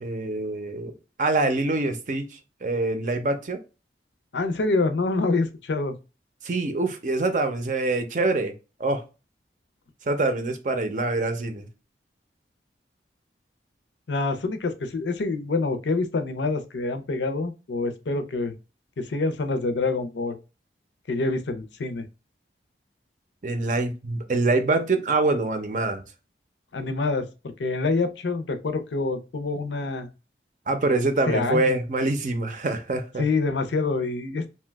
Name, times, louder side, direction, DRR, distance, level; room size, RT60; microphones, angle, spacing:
voice 1, 0.0-0.9 1.2-3.6 6.4-8.5 8.8-9.0 10.1-11.7 23.4-26.0 30.7-33.2, right 2 dB, 45° right, 0.5 m, -25 dB
voice 2, 4.3-5.9 14.1-18.5 19.0-20.4 21.1-22.1 26.7-30.1 31.3-31.8 33.2-34.5, left 3 dB, 90° left, 0.5 m, -26 dB
2.8 x 2.2 x 3.3 m
head